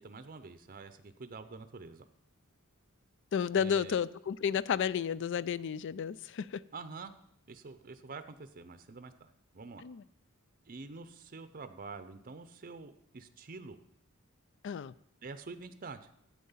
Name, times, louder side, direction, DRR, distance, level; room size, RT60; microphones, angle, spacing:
voice 1, 0.0-2.1 3.5-4.0 6.7-7.1 7.5-9.8 10.7-13.8 15.2-16.1, right 4 dB, 40° right, 0.6 m, -47 dB
voice 2, 3.3-6.6 9.8-10.0 14.6-14.9, left 7 dB, 60° left, 0.4 m, -32 dB
11.5 x 8.5 x 5.6 m
head